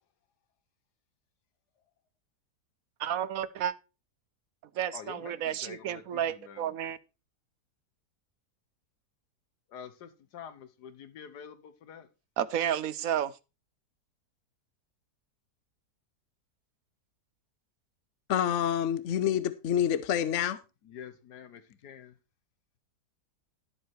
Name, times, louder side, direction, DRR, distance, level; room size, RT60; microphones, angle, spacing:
voice 1, 3.0-3.7 4.7-7.0 12.4-13.3, right 10 dB, 65° right, 1.1 m, -31 dB
voice 2, 4.9-6.0 6.3-6.6 9.7-12.1 20.9-22.1, left 8 dB, 90° left, 1.6 m, -47 dB
voice 3, 18.3-20.6, left 9 dB, 55° left, 1.0 m, -27 dB
12.5 x 7.7 x 4.5 m
omnidirectional pair, 1.7 m